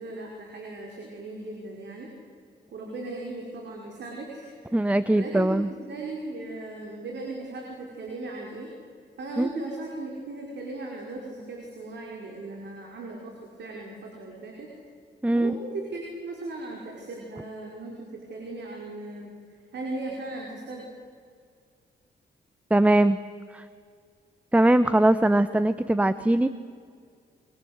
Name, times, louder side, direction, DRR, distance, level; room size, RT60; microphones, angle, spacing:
voice 1, 0.0-2.1 2.7-4.8 5.1-8.7 9.2-14.7 15.3-20.9, right 2 dB, 75° right, 0 dB, 5.3 m, -37 dB
voice 2, 4.7-5.7 9.4-9.5 15.2-15.6 22.7-23.2 23.5-23.6 24.5-26.5, right 1 dB, 5° right, 13 dB, 0.9 m, -21 dB
29.0 x 23.5 x 8.1 m, 2.1 s
cardioid pair, 80°, 18 cm